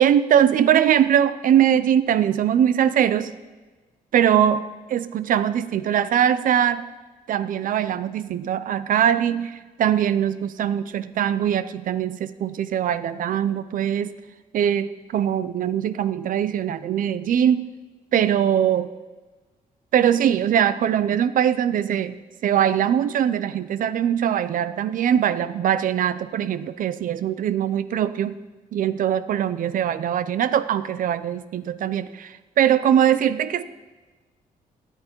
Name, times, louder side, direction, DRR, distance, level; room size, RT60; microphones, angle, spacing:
voice 1, 0.0-3.3 4.1-6.9 7.3-14.1 14.5-17.7 18.1-18.9 19.9-28.4 28.7-33.6, right 9 dB, 65° right, 15 dB, 0.5 m, -21 dB
17.0 x 9.2 x 4.5 m, 1.2 s
cardioid pair, 145°, 15 cm